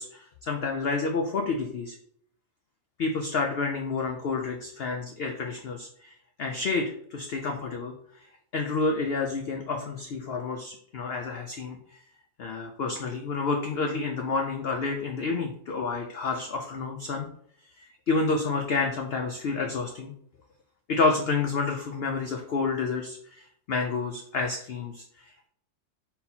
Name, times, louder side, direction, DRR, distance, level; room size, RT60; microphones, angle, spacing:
voice 1, 0.0-2.0 3.0-6.1 6.4-7.9 8.5-11.8 12.4-17.3 17.8-20.1 20.9-25.5, left 4 dB, 85° left, 3 dB, 0.5 m, -29 dB
3.9 x 2.8 x 4.1 m, 0.65 s
omnidirectional pair, 1.7 m